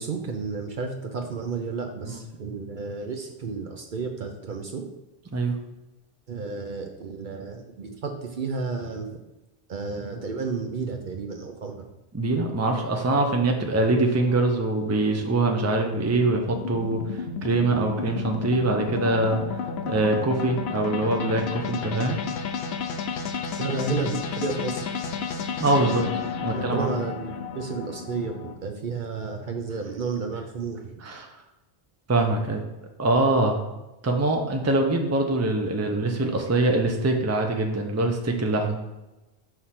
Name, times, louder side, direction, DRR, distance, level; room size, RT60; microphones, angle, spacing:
voice 1, 0.0-4.8 6.3-9.1 9.7-11.8 23.6-24.9 26.5-31.0, right 4 dB, 55° right, 3 dB, 0.7 m, -32 dB
voice 2, 12.1-17.0 17.4-19.4 19.8-22.2 25.6-26.0 26.4-26.9 31.0-31.3 32.1-32.6 33.0-33.6 34.0-38.8, right 2 dB, 20° right, 3 dB, 0.5 m, -23 dB
sound 1, 14.3-28.6, left 5 dB, 75° left, 0.9 m, -32 dB
5.8 x 3.3 x 5.7 m, 1.0 s
omnidirectional pair, 1.1 m